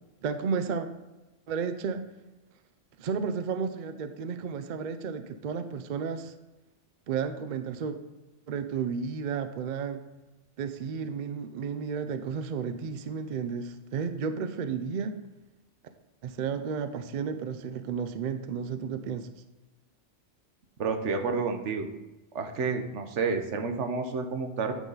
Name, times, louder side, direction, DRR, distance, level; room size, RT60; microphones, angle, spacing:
voice 1, 0.2-0.9 1.5-2.0 3.0-6.3 7.1-8.0 8.5-10.0 10.6-15.1 16.2-19.3, right 6 dB, 60° right, 8 dB, 0.5 m, -32 dB
voice 2, 20.8-21.9 22.3-24.7, right 4 dB, 75° right, 6 dB, 1.1 m, -30 dB
9.0 x 3.9 x 3.9 m, 1.1 s
omnidirectional pair, 1.3 m